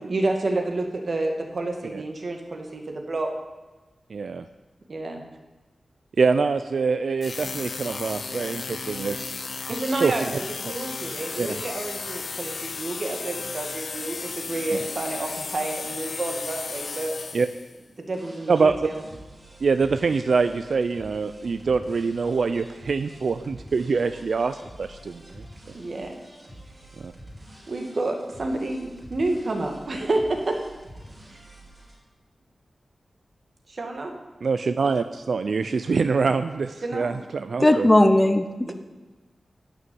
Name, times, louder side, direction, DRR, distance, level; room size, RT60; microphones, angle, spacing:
voice 1, 0.1-3.3 4.9-5.2 9.7-17.1 18.0-19.0 25.7-26.2 27.7-30.6 31.3-31.4 33.7-34.1 36.8-37.2 38.6-38.7, right 2 dB, 50° right, 3 dB, 2.0 m, -29 dB
voice 2, 4.1-4.4 6.2-9.5 9.8-10.1 11.4-11.5 17.3-17.5 18.5-18.8 19.6-25.4 27.0-27.1 34.4-37.9, right 4 dB, 70° right, 10 dB, 0.5 m, -24 dB
sound 1, 7.2-17.8, left 4 dB, 60° left, 0.7 m, -34 dB
sound 2, 18.1-31.9, right 1 dB, 20° right, 4.7 m, -47 dB
voice 3, 37.6-38.7, left 1 dB, 15° left, 9 dB, 0.7 m, -18 dB
11.5 x 6.6 x 9.2 m, 1.2 s
wide cardioid pair, 125°, 0 cm